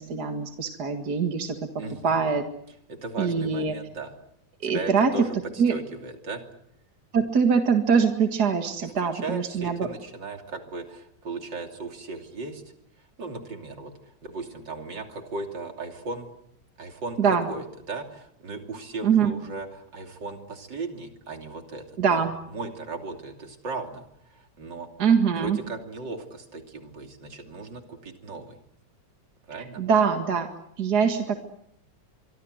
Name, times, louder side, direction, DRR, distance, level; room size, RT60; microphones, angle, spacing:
voice 1, 0.0-1.6 2.0-2.4 3.2-3.7 4.6-5.1 5.6-5.7 7.1-9.9 17.2-17.5 19.0-19.3 22.0-22.4 25.0-25.6 29.8-30.5 30.8-31.4, right 6 dB, 60° right, 6 dB, 2.4 m, -23 dB
voice 2, 1.8-2.3 2.9-4.1 4.6-6.5 8.8-12.6 13.0-16.3 16.8-24.9 25.4-28.6 29.5-29.8, right 3 dB, 80° right, 5 dB, 3.5 m, -37 dB
24.5 x 24.5 x 7.9 m, 0.74 s
omnidirectional pair, 1.9 m